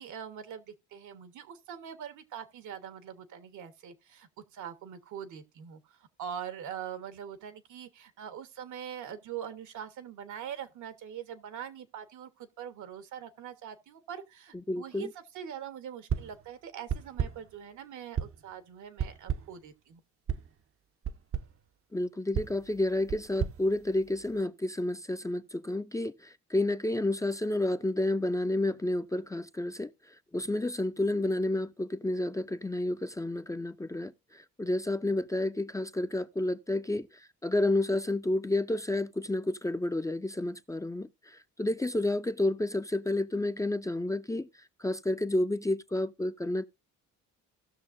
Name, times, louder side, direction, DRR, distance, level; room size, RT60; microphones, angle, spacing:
voice 1, 0.0-20.0, right 9 dB, 75° right, 1.3 m, -43 dB
voice 2, 14.7-15.1 21.9-29.9 30.3-37.1 37.4-44.5 44.8-46.6, left 1 dB, 10° left, 0.5 m, -30 dB
sound 1, 16.1-16.5 16.9-17.5 18.2-18.5 19.0-19.6 20.3-20.5 21.0-21.6 22.3-24.4, right 8 dB, 45° right, 0.7 m, -35 dB
17.0 x 6.3 x 2.6 m
cardioid pair, 90°, 30 cm